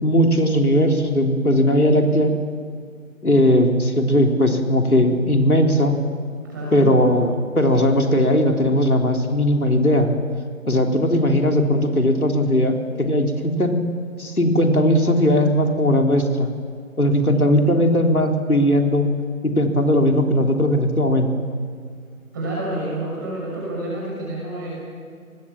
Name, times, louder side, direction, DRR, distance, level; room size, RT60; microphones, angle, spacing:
voice 1, 0.0-2.3 3.2-5.9 6.7-10.1 10.7-12.7 13.0-13.8 14.2-16.5 17.0-19.1 19.4-21.5, equal, 80° left, 3 dB, 3.6 m, -18 dB
voice 2, 6.5-6.8 22.3-24.7, right 1 dB, 15° right, -5 dB, 6.1 m, -28 dB
27.0 x 20.0 x 7.4 m, 2.1 s
figure-of-eight pair, 165°, 43 cm